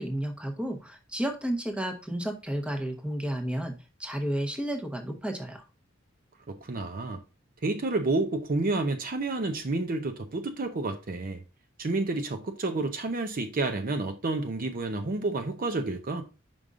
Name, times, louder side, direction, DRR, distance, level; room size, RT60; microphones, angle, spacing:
voice 1, 0.0-5.6, right 1 dB, 5° right, 0.9 m, -32 dB
voice 2, 6.5-7.2 7.6-11.4 11.8-16.2, right 2 dB, 45° right, 0.6 m, -30 dB
5.3 x 5.2 x 3.6 m
head